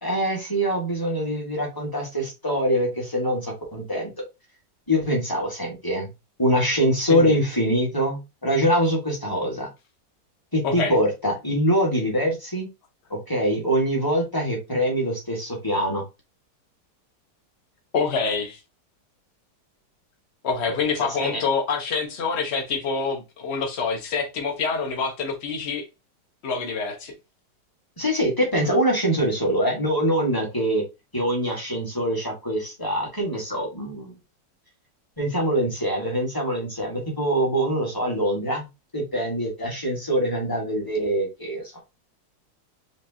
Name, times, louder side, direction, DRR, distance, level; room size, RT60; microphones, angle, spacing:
voice 1, 0.0-4.1 4.9-6.1 6.4-9.7 10.5-12.7 13.1-16.0 21.1-21.4 28.0-30.8 31.1-34.1 35.2-38.7 38.9-41.8, equal, 10° left, 1.6 m, -24 dB
voice 2, 7.1-7.4 10.6-11.0 17.9-18.6 20.4-25.8 26.4-27.1, left 5 dB, 40° left, 1.3 m, -26 dB
5.1 x 3.2 x 2.8 m
omnidirectional pair, 1.9 m